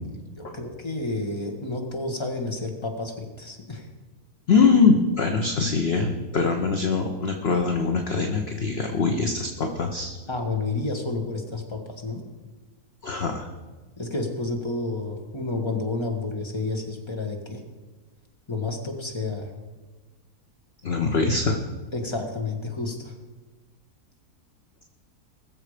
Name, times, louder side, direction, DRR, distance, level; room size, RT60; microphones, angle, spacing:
voice 1, 0.4-3.9 10.3-12.2 14.0-17.6 18.5-19.5 21.9-23.1, left 3 dB, 20° left, 2 dB, 1.6 m, -30 dB
voice 2, 4.5-10.2 13.0-13.5 20.8-21.6, left 4 dB, 45° left, 4 dB, 1.1 m, -22 dB
20.0 x 7.2 x 5.0 m, 1.3 s
omnidirectional pair, 1.7 m